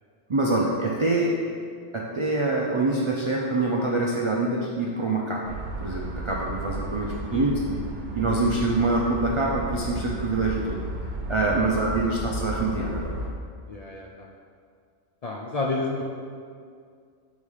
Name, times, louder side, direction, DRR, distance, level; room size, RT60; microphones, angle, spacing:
voice 1, 0.3-1.3 1.9-5.4 5.8-10.8 11.3-13.2, right 2 dB, 50° right, -3 dB, 0.3 m, -25 dB
sound 1, 5.4-13.3, right 1 dB, 70° right, 1.1 m, -34 dB
voice 2, 11.5-11.9 13.7-14.3 15.2-16.0, left 3 dB, 75° left, -1 dB, 0.3 m, -31 dB
4.8 x 4.1 x 5.5 m, 2.2 s
omnidirectional pair, 1.3 m